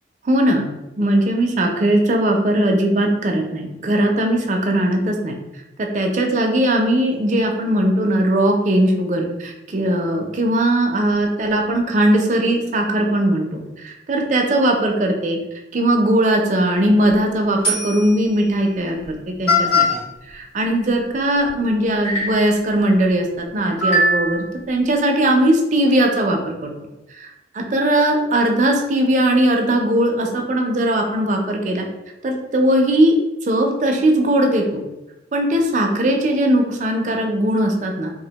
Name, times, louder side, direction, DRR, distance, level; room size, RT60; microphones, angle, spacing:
voice 1, 0.2-0.7 1.0-5.3 5.8-15.4 15.7-20.0 20.3-26.7 27.1-31.9 32.2-33.2 33.4-34.8 35.3-38.1, right 1 dB, 40° right, 2 dB, 0.4 m, -19 dB
sound 1, 16.8-17.1 17.6-18.2 19.0-19.1 19.5-20.0 21.5-21.6 22.0-22.5 23.8-24.5, left 2 dB, 90° left, 1.1 m, -20 dB
2.4 x 2.1 x 2.8 m, 0.97 s
head